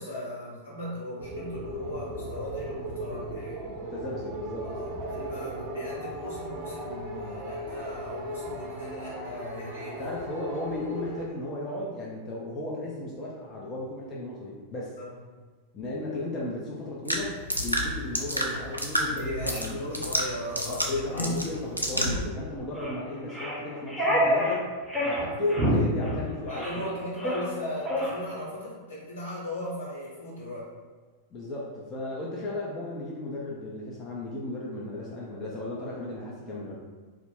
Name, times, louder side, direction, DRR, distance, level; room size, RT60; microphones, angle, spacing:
voice 1, 0.0-3.6 4.6-10.0 15.0-15.1 19.0-21.3 25.3-26.1 26.4-30.7, equal, 65° left, -8 dB, 1.1 m, -37 dB
sound 1, 1.2-11.3, right 1 dB, 35° right, 0.6 m, -37 dB
voice 2, 3.8-4.7 9.9-15.0 15.7-20.0 20.6-24.7 25.0-26.9 31.3-36.8, left 2 dB, 25° left, -5 dB, 0.4 m, -35 dB
sound 2, 17.1-22.3, equal, 90° right, 0.3 m, -30 dB
sound 3, 21.1-21.3 21.9-22.1 22.8-23.0 23.3-24.6 24.9-25.2 25.5-25.8 26.0-26.2 26.5-26.9 27.1-27.5 27.9-28.1, equal, ahead, 0.7 m, -27 dB
2.4 x 2.0 x 3.4 m, 1.4 s
figure-of-eight pair, 90°, 0 cm